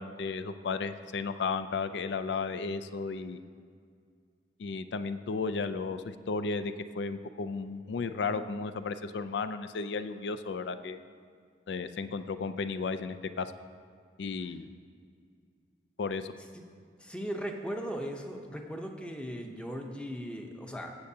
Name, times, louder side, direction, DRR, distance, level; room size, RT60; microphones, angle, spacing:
voice 1, 0.0-3.4 4.6-11.0 11.7-13.5 14.2-14.7 16.0-16.3, left 4 dB, 75° left, 11 dB, 0.4 m, -34 dB
voice 2, 17.0-21.0, equal, 5° left, 3 dB, 0.7 m, -38 dB
15.0 x 7.8 x 2.8 m, 2.2 s
head